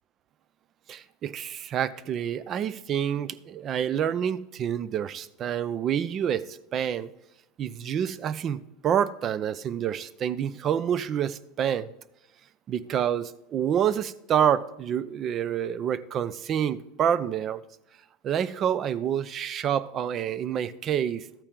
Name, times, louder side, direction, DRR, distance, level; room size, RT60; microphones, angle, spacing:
voice 1, 0.9-7.1 7.6-11.9 12.7-17.6 18.2-21.3, right 9 dB, 35° right, 18 dB, 0.5 m, -28 dB
13.5 x 8.9 x 3.8 m, 0.86 s
supercardioid pair, 130°, 0 cm